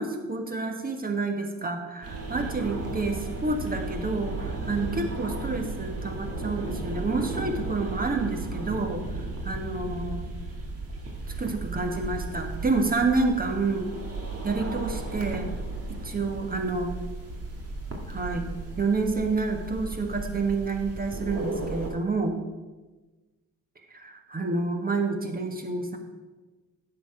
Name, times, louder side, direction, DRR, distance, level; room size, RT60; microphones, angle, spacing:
voice 1, 0.0-9.0 9.4-10.3 11.4-13.9 14.4-15.5 15.9-17.0 18.1-18.4 18.8-22.4 23.9-26.0, right 3 dB, 25° right, 5 dB, 1.4 m, -29 dB
sound 1, 2.0-21.9, right 2 dB, 45° right, 1.9 m, -35 dB
10.0 x 6.8 x 4.9 m, 1.2 s
cardioid pair, 85°, 33 cm